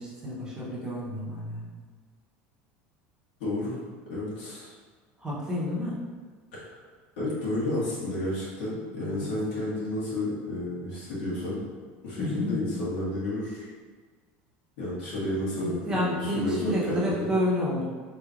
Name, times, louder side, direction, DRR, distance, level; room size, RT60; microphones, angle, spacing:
voice 1, 0.0-1.8 5.2-6.0 9.1-9.3 12.2-12.7 15.6-17.8, left 1 dB, 10° right, -7 dB, 0.8 m, -30 dB
voice 2, 3.4-3.8 4.1-4.7 6.6-6.7 7.2-11.7 12.0-13.7 14.8-17.3, left 1 dB, 75° left, -8 dB, 1.5 m, -31 dB
4.0 x 3.2 x 2.5 m, 1.5 s
cardioid pair, 170°, 5 cm